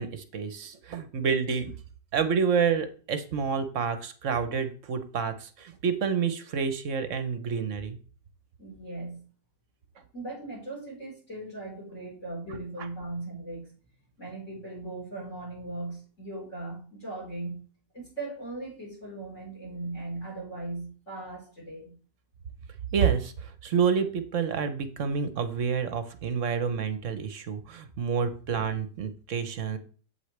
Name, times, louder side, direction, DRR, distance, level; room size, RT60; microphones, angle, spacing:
voice 1, 0.0-1.7 2.1-8.0 12.8-12.9 22.9-29.8, right 6 dB, 55° right, 10 dB, 1.0 m, -28 dB
voice 2, 8.6-9.2 10.1-13.7 14.2-17.6 17.9-21.9, right 2 dB, 45° left, -4 dB, 4.4 m, -38 dB
8.1 x 7.8 x 3.3 m, 0.40 s
omnidirectional pair, 1.8 m